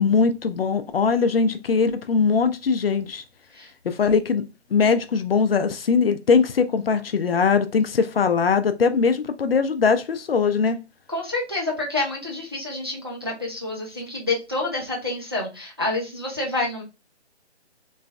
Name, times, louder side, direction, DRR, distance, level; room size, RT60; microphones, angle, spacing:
voice 1, 0.0-3.2 3.8-4.4 4.7-10.8, left 5 dB, 60° left, 0.5 m, -21 dB
voice 2, 11.1-16.8, left 2 dB, 25° right, 0.4 m, -28 dB
3.1 x 2.6 x 2.2 m
hypercardioid pair, 160°, 34 cm